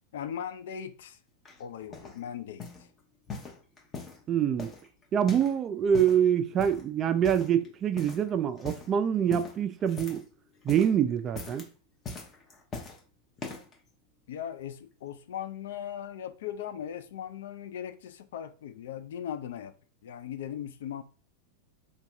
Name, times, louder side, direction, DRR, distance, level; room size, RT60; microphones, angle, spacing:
voice 1, 0.1-1.2 1.6-2.6 14.3-19.7 20.0-21.0, left 9 dB, 60° left, 0.3 m, -38 dB
sound 1, 1.4-2.2 2.6-2.9 3.3-4.2 4.6-5.6 5.8-6.2 6.6-6.9 7.2-7.7 8.0-8.3 8.6-8.9 9.3-10.3 10.6-11.0 11.3-11.7 12.0-13.0 13.4-13.7 14.4-14.5, left 4 dB, 25° left, 0.8 m, -41 dB
voice 2, 4.3-4.7 5.1-10.2 10.6-11.6, right 8 dB, 30° right, 0.3 m, -25 dB
2.6 x 2.6 x 3.3 m
figure-of-eight pair, 90°, 0 cm